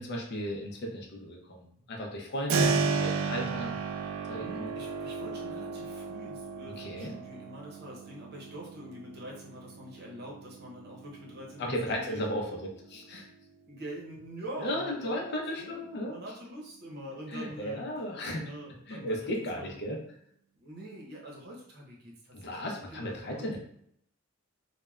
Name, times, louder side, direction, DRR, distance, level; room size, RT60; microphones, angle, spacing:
voice 1, 0.0-3.7 4.3-4.7 6.7-7.1 11.6-12.5 12.9-13.2 14.6-16.2 17.3-18.4 18.9-20.0 22.3-23.6, equal, 55° left, 0 dB, 0.6 m, -35 dB
Keyboard (musical), 2.5-13.2, right 4 dB, 80° right, 0.3 m, -34 dB
voice 2, 4.4-12.2 13.7-17.9 18.3-19.8 20.6-23.6, equal, 55° right, -3 dB, 0.8 m, -45 dB
3.2 x 2.2 x 2.3 m, 0.70 s
head